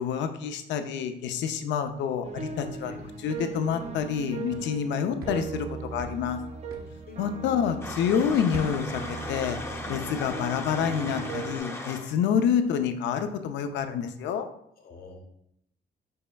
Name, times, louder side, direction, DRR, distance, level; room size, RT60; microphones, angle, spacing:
voice 1, 0.0-2.9 3.2-5.7 5.9-6.4 7.2-9.6 9.9-14.5, left 7 dB, 80° left, 8 dB, 0.5 m, -28 dB
sound 1, 2.2-11.6, right 5 dB, 40° right, 0.5 m, -38 dB
sound 2, 4.5-7.8 8.1-10.1 10.4-10.7, right 1 dB, 55° right, 0.9 m, -45 dB
voice 2, 7.1-7.8 14.8-15.2, left 3 dB, 55° left, 3 dB, 1.0 m, -46 dB
sound 3, 7.8-12.1, left 2 dB, 15° left, 0.6 m, -37 dB
5.4 x 4.2 x 2.3 m, 0.74 s
cardioid pair, 95°, 18 cm